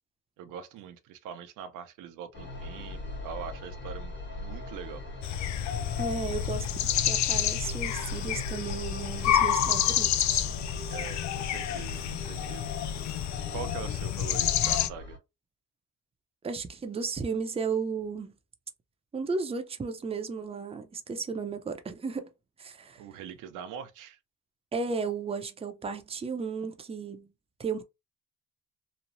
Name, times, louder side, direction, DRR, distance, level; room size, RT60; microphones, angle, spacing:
voice 1, 0.4-5.0 9.1-9.8 10.9-12.7 13.5-15.2 23.0-24.2, right 8 dB, 90° right, 0.6 m, -43 dB
sound 1, 2.3-15.2, left 1 dB, 40° left, 1.3 m, -41 dB
sound 2, 5.2-14.9, left 10 dB, 65° left, 0.4 m, -29 dB
voice 2, 6.0-6.7 7.0-10.4 10.8-10.9 16.4-18.4 19.1-22.3 22.6-23.0 24.7-27.3 27.6-27.8, right 5 dB, 20° right, 0.5 m, -34 dB
3.0 x 2.0 x 2.6 m
cardioid pair, 90°, 30 cm